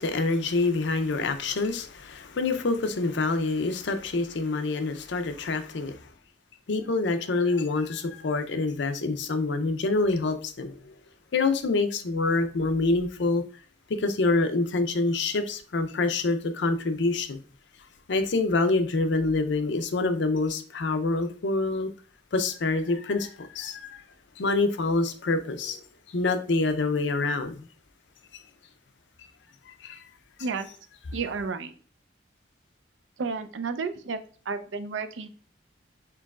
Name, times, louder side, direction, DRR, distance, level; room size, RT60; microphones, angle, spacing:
voice 1, 0.0-6.0 6.7-10.9 11.3-13.4 14.0-17.4 18.1-21.9 22.3-24.0 24.4-25.8 26.1-27.6 29.7-30.0, left 3 dB, 70° left, 0.5 m, -26 dB
voice 2, 31.1-31.7 33.2-34.2 34.5-35.3, right 4 dB, 75° right, 0.5 m, -31 dB
4.5 x 3.9 x 2.3 m
head